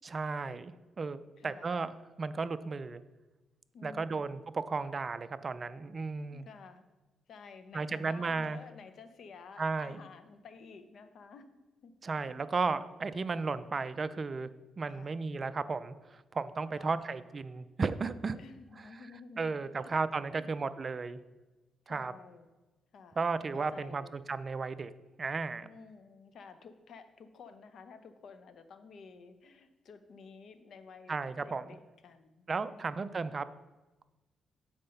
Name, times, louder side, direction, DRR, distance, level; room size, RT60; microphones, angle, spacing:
voice 1, 0.1-3.0 3.8-6.5 7.7-8.6 9.6-10.0 12.0-14.5 14.8-18.4 19.4-21.2 21.9-22.1 23.2-24.9 25.2-25.7 31.1-31.6 32.5-33.4, right 4 dB, 35° right, 13 dB, 0.4 m, -34 dB
voice 2, 1.4-1.8 3.7-4.4 6.2-6.8 7.3-11.9 12.4-12.5 14.9-15.2 16.7-17.2 18.3-20.0 20.3-20.6 21.9-22.5 22.9-23.2 23.5-24.2 25.6-33.1, left 5 dB, 65° left, 10 dB, 0.7 m, -52 dB
7.6 x 4.4 x 5.3 m, 1.2 s
cardioid pair, 90°, 0 cm